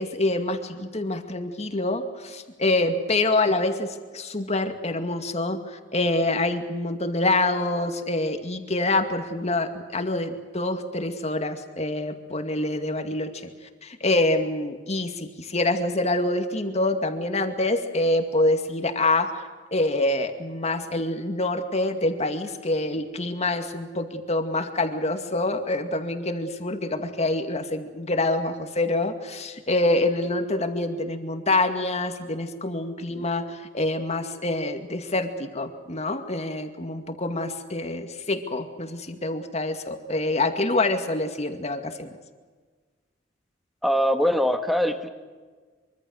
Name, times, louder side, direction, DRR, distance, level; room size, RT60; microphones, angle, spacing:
voice 1, 0.0-13.5 13.8-19.3 19.7-42.1, left 2 dB, 35° left, 6 dB, 2.3 m, -26 dB
voice 2, 43.8-45.1, equal, ahead, 7 dB, 1.7 m, -22 dB
24.5 x 24.5 x 6.6 m, 1.4 s
head